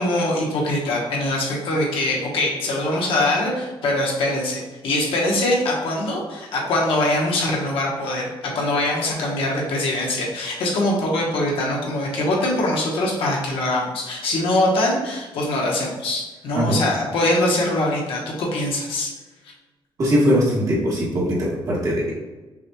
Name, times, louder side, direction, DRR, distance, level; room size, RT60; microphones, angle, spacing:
voice 1, 0.0-19.1, left 1 dB, 80° left, -2 dB, 1.1 m, -23 dB
voice 2, 20.0-21.4 21.7-22.1, equal, 35° right, -5 dB, 1.3 m, -20 dB
5.9 x 3.0 x 2.2 m, 1.2 s
wide cardioid pair, 170°, 9 cm